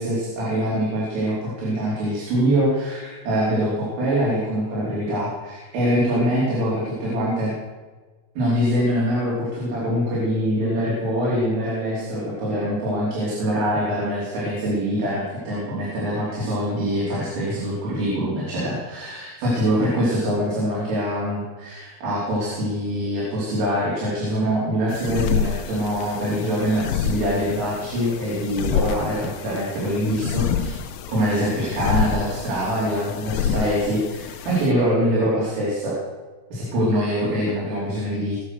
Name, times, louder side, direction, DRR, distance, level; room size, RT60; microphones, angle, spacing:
voice 1, 0.0-7.6 8.4-30.8 31.1-36.0 36.5-38.4, equal, 80° right, -7 dB, 7.2 m, -24 dB
sound 1, 24.9-34.7, left 8 dB, 85° left, 3.4 m, -28 dB
23.5 x 8.7 x 6.6 m, 1.3 s
omnidirectional pair, 5.7 m